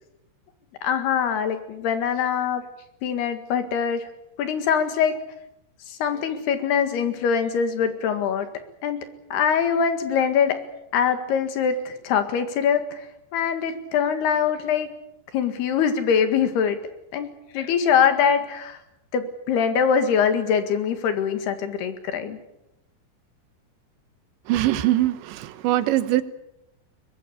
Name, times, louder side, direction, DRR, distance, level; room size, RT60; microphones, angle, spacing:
voice 1, 0.8-2.6 3.0-4.1 4.4-5.1 5.9-8.5 8.8-9.0 9.3-10.6 10.9-13.1 13.3-14.9 15.3-16.8 17.1-17.3 17.5-18.8 19.1-22.4, left 7 dB, 70° left, 8 dB, 3.8 m, -23 dB
voice 2, 24.5-26.2, right 14 dB, 90° right, 12 dB, 3.4 m, -22 dB
23.5 x 20.0 x 8.4 m, 0.85 s
omnidirectional pair, 5.0 m